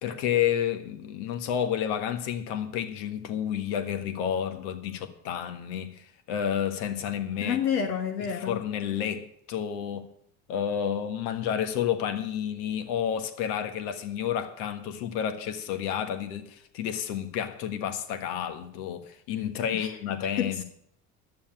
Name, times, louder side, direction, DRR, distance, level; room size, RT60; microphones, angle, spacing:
voice 1, 0.0-7.6 8.5-10.1 10.5-20.6, left 9 dB, 70° left, 1.6 m, -30 dB
voice 2, 7.4-8.7 19.7-20.0 20.4-20.6, left 8 dB, 90° left, 1.3 m, -29 dB
11.5 x 7.2 x 8.8 m
hypercardioid pair, 85°, 45 cm